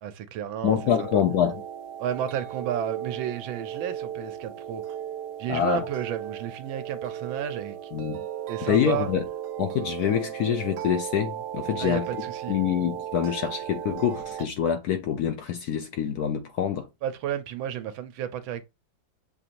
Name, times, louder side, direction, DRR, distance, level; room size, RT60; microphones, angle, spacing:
voice 1, 0.0-1.2 2.0-4.8 5.4-7.9 8.5-9.1 11.8-12.6 17.0-18.6, right 10 dB, 85° right, 1.5 m, -32 dB
voice 2, 0.6-1.6 5.5-5.9 7.9-8.2 8.6-9.2 9.6-12.0 12.5-16.9, left 9 dB, 75° left, 0.9 m, -26 dB
sound 1, 0.7-14.5, right 10 dB, 70° right, 1.1 m, -36 dB
6.7 x 2.5 x 2.8 m
omnidirectional pair, 2.1 m